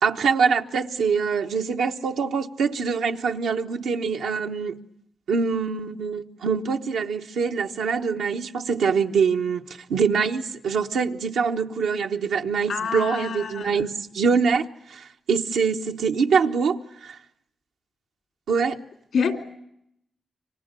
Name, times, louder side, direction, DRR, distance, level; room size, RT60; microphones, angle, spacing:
voice 1, 0.0-4.8 5.3-9.6 9.9-17.2 18.5-18.8, right 5 dB, 85° right, 1.1 m, -24 dB
voice 2, 12.7-13.8 19.1-19.4, left 6 dB, 80° left, 3.2 m, -26 dB
29.0 x 25.0 x 6.7 m
supercardioid pair, 45°, 0 cm